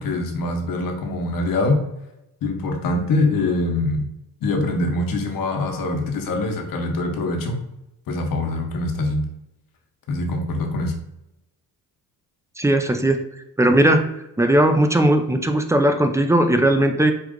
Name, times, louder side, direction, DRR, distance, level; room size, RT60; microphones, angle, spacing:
voice 1, 0.0-1.8 2.4-4.1 4.4-7.6 8.1-9.3 10.1-10.9, left 2 dB, 65° left, 3 dB, 1.0 m, -23 dB
voice 2, 12.6-13.2 13.6-14.1 14.4-17.1, right 1 dB, 10° right, 6 dB, 0.4 m, -17 dB
4.6 x 2.5 x 3.7 m, 0.88 s
cardioid pair, 95°, 36 cm